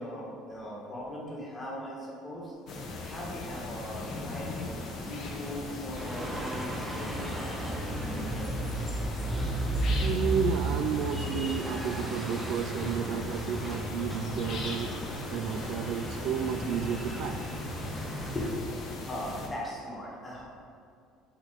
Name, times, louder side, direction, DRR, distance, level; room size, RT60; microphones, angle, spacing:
voice 1, 0.0-2.5 3.0-8.6 18.3-18.7 19.1-20.4, left 1 dB, 15° left, -4 dB, 1.6 m, -39 dB
sound 1, 2.7-19.5, left 2 dB, 40° left, 1.0 m, -39 dB
sound 2, 5.9-18.5, right 1 dB, 10° right, 0.8 m, -34 dB
voice 2, 10.0-14.9 15.3-17.4 18.0-18.3, right 8 dB, 60° right, 8 dB, 0.3 m, -32 dB
5.8 x 4.4 x 5.1 m, 2.4 s
cardioid pair, 145°, 0 cm